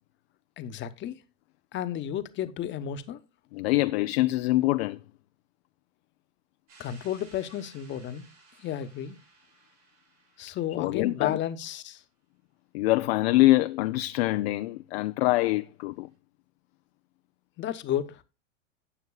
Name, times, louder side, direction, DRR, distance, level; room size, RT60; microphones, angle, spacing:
voice 1, 0.6-1.2 1.7-3.2 6.8-8.2 8.6-9.2 10.4-12.0 17.6-18.2, left 10 dB, 30° left, 1.0 m, -32 dB
voice 2, 3.5-5.0 10.8-11.4 12.7-16.1, left 18 dB, 55° left, 0.5 m, -24 dB
sound 1, 6.7-11.5, right 3 dB, 85° right, 6.8 m, -58 dB
17.0 x 6.4 x 2.3 m
hypercardioid pair, 105°, 38 cm